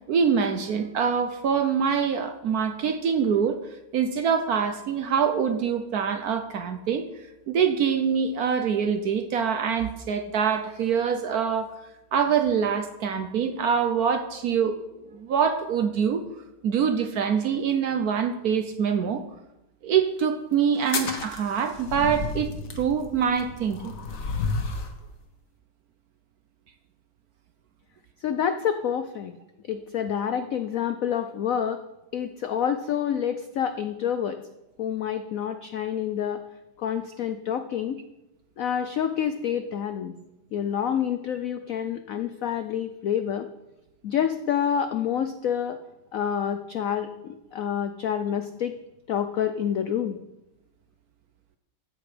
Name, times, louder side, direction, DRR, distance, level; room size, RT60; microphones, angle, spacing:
voice 1, 0.1-3.6 3.9-7.1 7.5-11.7 12.1-14.8 15.1-16.2 16.6-19.2 19.8-22.5 22.8-23.9, right 7 dB, 65° right, 8 dB, 1.0 m, -24 dB
sound 1, 20.8-25.0, left 4 dB, 50° left, 1.5 m, -32 dB
voice 2, 28.2-29.3 29.7-31.8 32.1-34.4 34.8-36.4 36.8-38.0 38.6-40.1 40.5-43.5 44.0-45.8 46.1-48.8 49.1-50.2, left 8 dB, 85° left, 9 dB, 0.7 m, -28 dB
14.0 x 8.0 x 5.0 m, 0.94 s
omnidirectional pair, 2.2 m